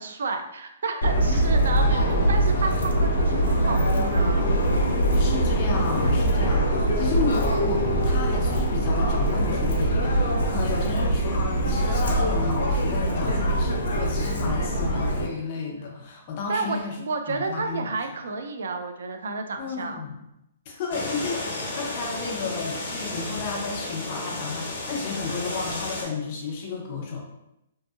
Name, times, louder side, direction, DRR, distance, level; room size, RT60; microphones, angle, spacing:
voice 1, 0.0-4.4 16.5-20.0, right 4 dB, 75° right, 6 dB, 0.3 m, -31 dB
Subway metro underground, 1.0-15.3, right 1 dB, 85° left, 0.5 m, -23 dB
voice 2, 1.8-2.1 5.1-17.0 17.3-17.8 19.6-20.2 20.7-27.2, left 4 dB, 30° left, -1 dB, 0.5 m, -32 dB
sound 1, 20.9-26.0, left 2 dB, 55° left, 0.8 m, -33 dB
2.6 x 2.5 x 2.3 m, 0.85 s
hypercardioid pair, 175°, 0 cm